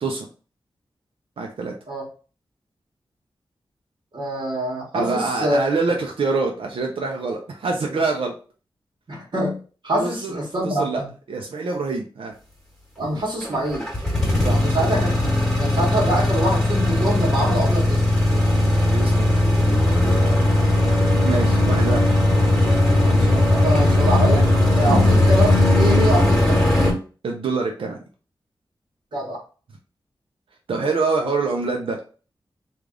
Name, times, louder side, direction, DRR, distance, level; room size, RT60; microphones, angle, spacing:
voice 1, 1.4-1.7 4.9-8.3 10.0-11.0 11.3-12.3 14.4-14.7 18.3-19.4 21.2-22.1 24.8-25.1 27.2-28.0 30.7-32.0, right 4 dB, 85° right, 1 dB, 0.5 m, -25 dB
voice 2, 4.1-5.6 9.1-9.6 9.8-11.1 13.0-13.9 14.5-15.2 15.6-18.2 20.2-20.4 23.0-24.5 24.7-26.7 29.1-29.4, right 1 dB, 60° right, -2 dB, 1.2 m, -25 dB
sound 1, 13.4-26.9, left 1 dB, 10° left, 1.2 m, -18 dB
3.3 x 2.4 x 3.6 m, 0.37 s
wide cardioid pair, 105°, 9 cm